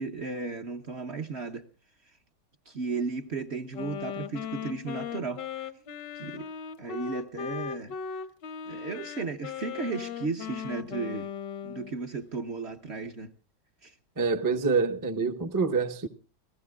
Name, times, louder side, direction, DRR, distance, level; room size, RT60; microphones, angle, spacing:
voice 1, 0.0-1.7 2.7-5.7 6.1-6.5 6.8-7.9 8.7-11.3 11.6-13.3 13.8-13.9, right 4 dB, 45° right, 1.0 m, -35 dB
Wind instrument woodwind instrument, 3.7-12.0, left 7 dB, 80° left, 1.5 m, -38 dB
voice 2, 14.2-16.1, right 4 dB, 20° right, 0.6 m, -26 dB
29.5 x 15.5 x 2.4 m
omnidirectional pair, 1.9 m